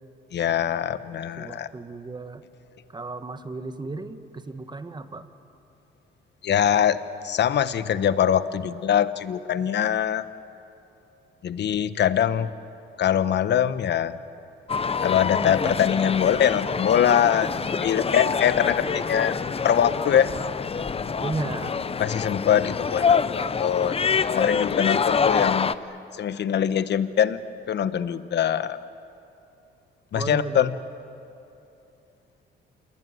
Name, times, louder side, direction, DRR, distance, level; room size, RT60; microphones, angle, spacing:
voice 1, 0.3-1.7 6.4-7.0 7.2-10.2 11.4-12.5 13.0-14.2 15.0-19.3 19.6-20.3 22.0-24.0 24.3-25.7 26.2-27.4 27.7-28.8 30.1-30.7, left 9 dB, 60° left, 14 dB, 1.1 m, -23 dB
voice 2, 1.4-2.4 2.9-5.3 21.2-21.8 30.1-30.7, right 3 dB, 20° right, 9 dB, 1.6 m, -34 dB
sound 1, 14.7-25.8, left 5 dB, 30° left, 0.7 m, -26 dB
sound 2, 16.9-22.0, left 1 dB, 90° left, 5.7 m, -48 dB
28.0 x 20.5 x 9.4 m, 2.7 s
cardioid pair, 90°, 20 cm